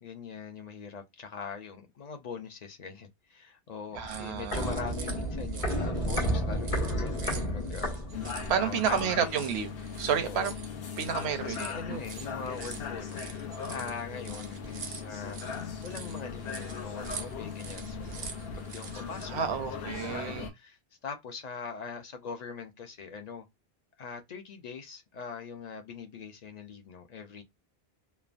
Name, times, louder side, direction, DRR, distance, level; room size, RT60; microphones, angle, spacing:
voice 1, 0.0-8.0 8.5-9.4 10.2-10.5 11.2-13.2 13.7-15.4 15.8-18.3 18.6-23.5 24.0-27.4, left 5 dB, 55° left, 0.5 m, -42 dB
Walk footsteps, 3.9-8.6 8.9-9.0, equal, 35° left, 0.9 m, -31 dB
voice 2, 3.9-4.8 8.5-10.6 11.0-12.0 12.7-12.8 19.3-20.5, right 8 dB, 90° right, 0.9 m, -31 dB
sound 1, 4.1-19.3, right 6 dB, 55° right, 0.5 m, -46 dB
sound 2, 8.1-20.5, left 5 dB, 70° left, 0.8 m, -39 dB
3.2 x 2.1 x 2.4 m
omnidirectional pair, 1.1 m